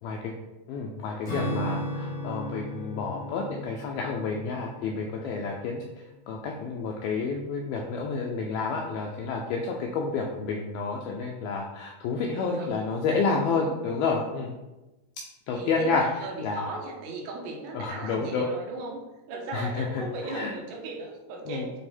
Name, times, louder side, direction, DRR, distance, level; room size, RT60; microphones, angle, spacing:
voice 1, 0.0-0.3 0.7-5.8 6.3-14.5 15.5-16.0 16.4-16.6 17.7-18.5 19.5-20.5 21.5-21.7, left 4 dB, 85° left, 0 dB, 2.1 m, -30 dB
Acoustic guitar / Strum, 1.2-6.0, equal, 25° left, 1.0 m, -36 dB
voice 2, 12.3-12.8 13.5-13.9 15.5-19.0 19.3-21.7, right 2 dB, 90° right, 0 dB, 3.5 m, -37 dB
9.1 x 3.5 x 4.3 m, 1.1 s
omnidirectional pair, 5.0 m